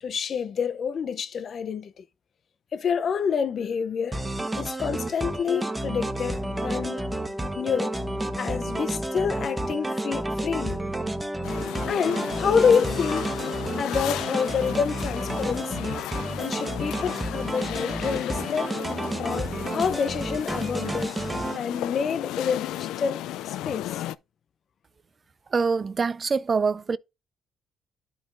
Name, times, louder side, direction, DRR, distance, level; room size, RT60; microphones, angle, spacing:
voice 1, 0.0-2.0 2.7-4.2 4.6-7.0 7.6-7.9 8.4-10.8 11.6-13.3 13.8-16.0 16.4-18.8 19.2-21.2 21.5-24.0, left 6 dB, 55° left, 0.7 m, -28 dB
sound 1, 4.1-21.6, right 1 dB, 15° right, 1.1 m, -31 dB
Brass instrument, 5.6-14.4, left 1 dB, 20° left, 1.1 m, -36 dB
sound 2, 11.4-24.2, left 13 dB, 90° left, 0.3 m, -35 dB
voice 2, 25.5-27.0, right 5 dB, 35° right, 0.4 m, -24 dB
11.5 x 5.5 x 2.6 m
cardioid pair, 90°, 0 cm